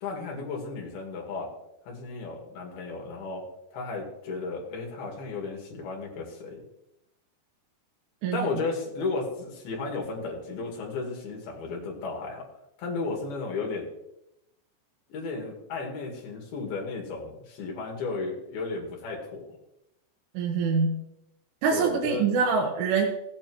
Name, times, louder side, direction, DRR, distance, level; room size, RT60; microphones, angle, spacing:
voice 1, 0.0-1.5 1.9-3.4 3.7-6.6 8.3-12.5 12.8-13.9 15.1-19.4 21.7-22.3, left 3 dB, 65° left, 0 dB, 3.8 m, -34 dB
voice 2, 20.3-21.0 21.6-23.1, right 5 dB, 80° right, -2 dB, 3.2 m, -25 dB
17.0 x 8.9 x 3.1 m, 0.86 s
omnidirectional pair, 5.0 m